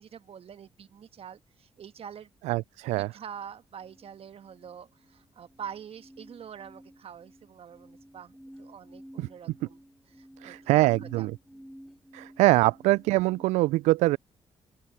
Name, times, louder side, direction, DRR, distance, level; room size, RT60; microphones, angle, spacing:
voice 1, 0.0-2.3 2.9-9.8 10.1-10.8 11.2-11.8, right 8 dB, 55° right, 1.5 m, -45 dB
voice 2, 2.4-3.1 9.2-9.3 10.4-11.4 12.1-14.2, right 19 dB, 75° right, 0.4 m, -23 dB
sound 1, 3.8-13.4, equal, ahead, 3.5 m, -52 dB
open air
hypercardioid pair, 45°, 12 cm